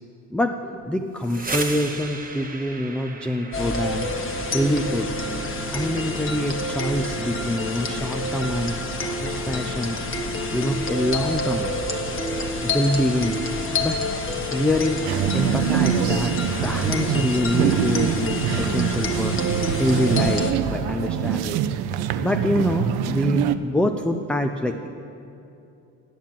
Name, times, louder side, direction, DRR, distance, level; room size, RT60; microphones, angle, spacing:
voice 1, 0.3-4.1 4.5-5.1 5.7-10.0 10.5-11.7 12.6-14.0 14.5-15.0 15.3-19.4 19.8-21.6 22.2-24.9, left 1 dB, 5° left, 4 dB, 0.4 m, -25 dB
sound 1, 1.0-10.8, right 3 dB, 20° right, 1.0 m, -38 dB
sound 2, 3.5-20.5, left 1 dB, 35° left, 1.1 m, -28 dB
sound 3, 15.1-23.6, right 9 dB, 80° right, 0.5 m, -24 dB
9.4 x 7.3 x 7.3 m, 2.7 s
cardioid pair, 80°, 38 cm